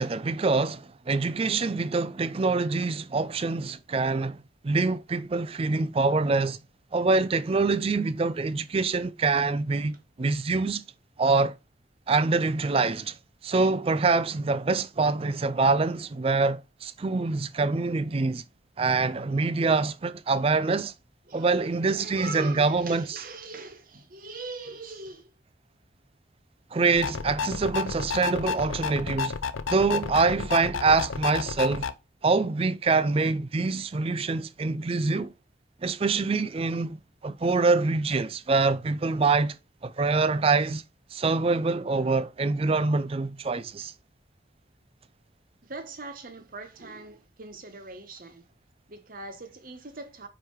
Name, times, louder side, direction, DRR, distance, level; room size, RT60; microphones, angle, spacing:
voice 1, 0.0-4.4 4.6-6.6 6.9-10.8 11.2-11.5 12.1-13.2 13.4-18.4 18.8-20.9 21.3-23.2 26.7-29.4 29.7-31.9 32.2-35.3 35.8-39.6 39.8-40.8 41.1-43.9, right 3 dB, 30° right, 0.4 m, -25 dB
voice 2, 21.3-25.3 42.0-42.1 45.6-48.5 48.9-50.3, right 3 dB, 45° right, 1.1 m, -41 dB
sound 1, 26.9-31.9, left 5 dB, 85° left, 0.6 m, -31 dB
5.0 x 4.6 x 4.6 m
head